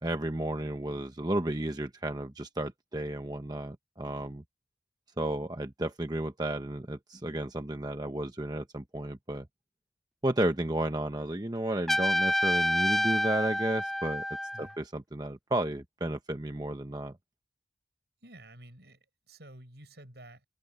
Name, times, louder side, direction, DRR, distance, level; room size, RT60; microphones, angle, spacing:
voice 1, 0.0-4.4 5.2-9.5 10.2-14.2 14.6-17.2, right 1 dB, 25° right, 0.9 m, -33 dB
Trumpet, 11.9-14.7, equal, ahead, 0.5 m, -28 dB
voice 2, 18.2-20.5, right 1 dB, 70° right, 6.5 m, -51 dB
head